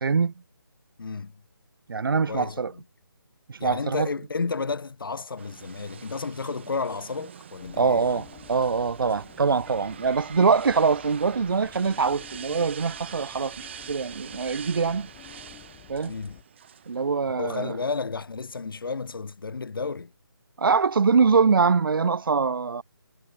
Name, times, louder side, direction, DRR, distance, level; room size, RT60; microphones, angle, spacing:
voice 1, 0.0-0.3 1.9-2.7 3.5-4.1 7.8-15.1 15.9-16.1 16.9-17.7 20.6-22.8, right 5 dB, 65° right, 0.4 m, -23 dB
voice 2, 1.0-1.4 2.3-2.8 3.6-8.3 16.0-16.4 17.3-20.1, left 4 dB, 65° left, 0.7 m, -32 dB
sound 1, 5.4-17.4, right 8 dB, 30° right, 0.7 m, -45 dB
sound 2, 7.6-16.4, left 23 dB, 15° left, 1.5 m, -50 dB
figure-of-eight pair, 155°, 12 cm